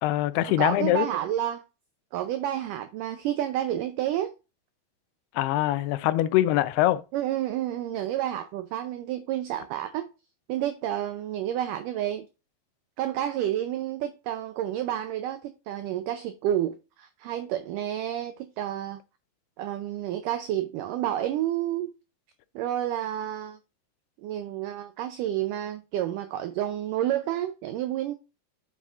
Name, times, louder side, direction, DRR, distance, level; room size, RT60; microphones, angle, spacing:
voice 1, 0.0-1.1 5.3-7.0, left 14 dB, 90° left, 2.7 m, -23 dB
voice 2, 0.6-1.6 2.1-4.3 7.1-10.1 10.5-12.2 13.0-19.0 19.6-21.9 22.6-23.6 24.2-28.1, right 12 dB, 90° right, 1.8 m, -30 dB
8.1 x 7.3 x 2.5 m
omnidirectional pair, 4.5 m